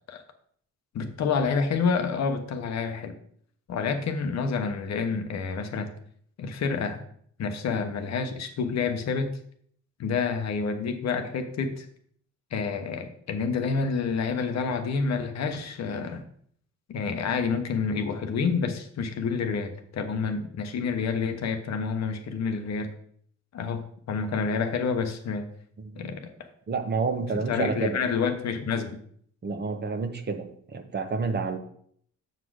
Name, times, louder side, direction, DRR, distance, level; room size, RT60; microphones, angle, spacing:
voice 1, 0.9-3.1 3.7-5.9 6.4-7.0 7.4-9.3 10.0-11.9 12.5-16.2 16.9-22.9 23.5-25.5 25.9-26.3 27.5-29.0, left 5 dB, 60° left, 6 dB, 1.0 m, -28 dB
voice 2, 25.8-26.1 26.7-28.0 29.4-31.6, right 4 dB, 35° right, 6 dB, 1.1 m, -29 dB
6.6 x 4.0 x 6.3 m, 0.63 s
cardioid pair, 90°, 30 cm